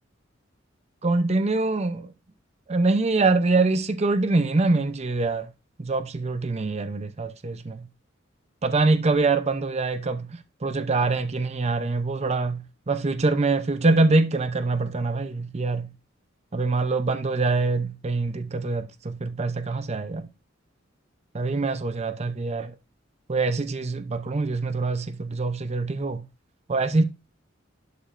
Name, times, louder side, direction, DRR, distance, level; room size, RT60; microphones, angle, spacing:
voice 1, 1.0-2.1 2.7-5.5 5.8-7.9 8.6-15.9 16.5-20.3 21.3-22.7 23.3-26.3 26.7-27.0, right 3 dB, 35° right, 0.6 m, -24 dB
11.0 x 5.0 x 2.5 m
head